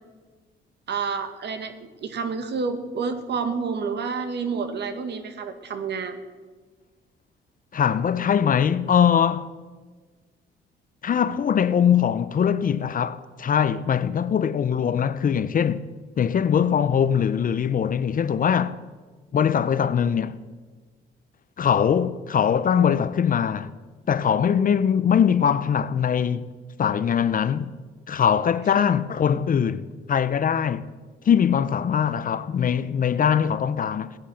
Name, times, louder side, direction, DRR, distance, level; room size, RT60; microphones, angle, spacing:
voice 1, 0.9-1.7 2.0-6.2 28.8-28.9, right 5 dB, 60° right, 1.7 m, -29 dB
voice 2, 7.7-9.5 11.0-15.8 16.2-18.8 19.3-20.4 21.6-23.7 24.1-26.5 26.8-27.7 28.1-30.9 31.2-34.2, left 8 dB, 45° left, 0.6 m, -22 dB
16.5 x 10.0 x 6.4 m
cardioid pair, 90°, 20 cm